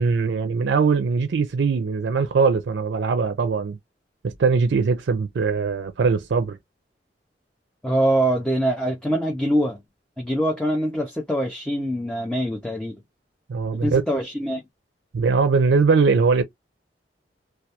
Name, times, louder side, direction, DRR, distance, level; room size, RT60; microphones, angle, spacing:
voice 1, 0.0-3.8 4.2-6.6 13.5-14.0 15.1-16.4, right 5 dB, 80° right, 0.4 m, -21 dB
voice 2, 7.8-9.8 10.2-12.9 13.8-14.6, right 1 dB, 5° left, 0.5 m, -23 dB
2.2 x 2.2 x 2.7 m
head